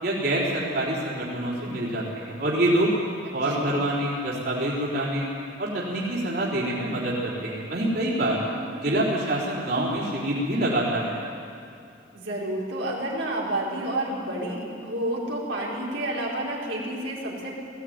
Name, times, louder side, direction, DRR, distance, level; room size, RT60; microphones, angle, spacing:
voice 1, 0.0-2.9 3.3-5.3 5.6-8.4 8.8-11.2, right 1 dB, 55° right, -5 dB, 4.1 m, -26 dB
voice 2, 8.3-8.7 12.1-17.6, right 1 dB, 85° right, -4 dB, 5.0 m, -30 dB
19.0 x 16.5 x 9.5 m, 2.5 s
head